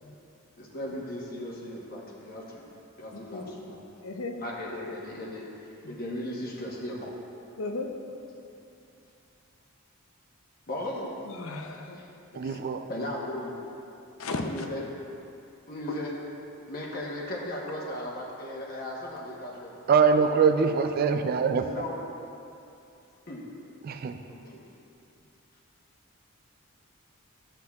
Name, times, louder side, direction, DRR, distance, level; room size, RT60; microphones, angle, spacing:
voice 1, 0.6-2.7 3.0-3.8 4.4-7.1 10.7-11.1 12.0-12.1 12.9-13.6 14.4-14.8 15.7-16.1 16.7-19.8 20.2-20.3 21.2-22.0 23.3-23.5 24.2-24.6, left 1 dB, 45° left, -3 dB, 1.0 m, -37 dB
voice 2, 3.1-3.4 4.0-4.4 7.6-7.9 11.2-12.0 12.3-12.6 14.2-14.7 15.9-16.1, left 3 dB, 75° left, 4 dB, 0.7 m, -35 dB
voice 3, 12.4-12.8 19.9-21.7 23.8-24.2, right 5 dB, 45° right, 7 dB, 0.3 m, -23 dB
11.5 x 7.9 x 2.4 m, 2.7 s
head